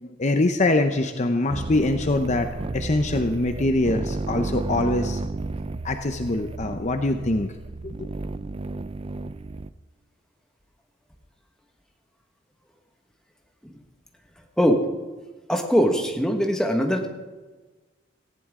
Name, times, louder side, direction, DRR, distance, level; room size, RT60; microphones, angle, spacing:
voice 1, 0.0-2.5 2.7-5.2 5.8-7.5 7.8-8.1, left 2 dB, 35° left, 6 dB, 0.7 m, -23 dB
sound 1, 1.5-9.7, right 2 dB, 30° right, 0.5 m, -32 dB
voice 2, 15.5-17.1, equal, 5° left, 3 dB, 1.5 m, -21 dB
18.5 x 15.5 x 3.7 m, 1.3 s
head